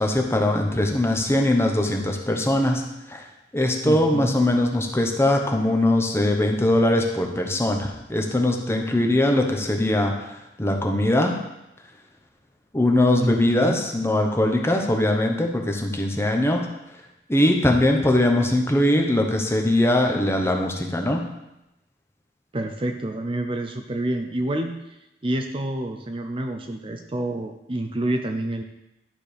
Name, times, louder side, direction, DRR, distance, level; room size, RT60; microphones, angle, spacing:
voice 1, 0.0-2.8 3.1-3.2 3.5-11.4 12.7-16.7 17.3-21.3, left 1 dB, 15° left, 2 dB, 1.0 m, -21 dB
voice 2, 3.8-4.4 13.2-13.8 22.5-24.7 25.2-28.6, right 1 dB, 30° right, 5 dB, 0.6 m, -28 dB
11.5 x 4.4 x 5.1 m, 0.90 s
head